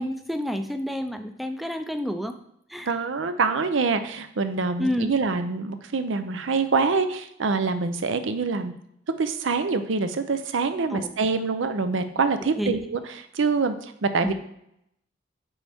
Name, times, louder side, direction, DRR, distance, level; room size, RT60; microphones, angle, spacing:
voice 1, 0.0-2.4 2.7-2.9 4.8-5.1 10.9-11.1 12.6-12.8 14.2-14.3, equal, ahead, 7 dB, 0.4 m, -29 dB
voice 2, 2.9-8.7 9.2-14.3, right 4 dB, 90° right, 10 dB, 0.6 m, -25 dB
9.2 x 4.1 x 3.5 m, 0.76 s
head